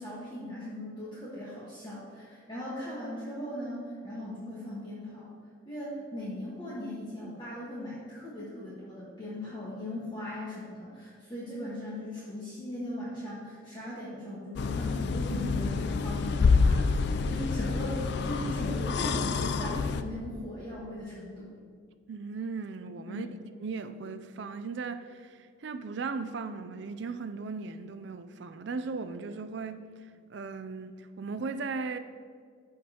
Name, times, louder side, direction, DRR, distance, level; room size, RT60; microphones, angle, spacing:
voice 1, 0.0-5.3 5.6-21.5 23.1-23.3, left 1 dB, 20° left, 1.3 m, -39 dB
sound 1, 14.6-20.0, left 4 dB, 55° left, 0.3 m, -27 dB
voice 2, 22.1-23.3 23.6-29.9 30.3-32.0, right 4 dB, 55° right, 0.4 m, -37 dB
13.5 x 5.1 x 2.9 m
head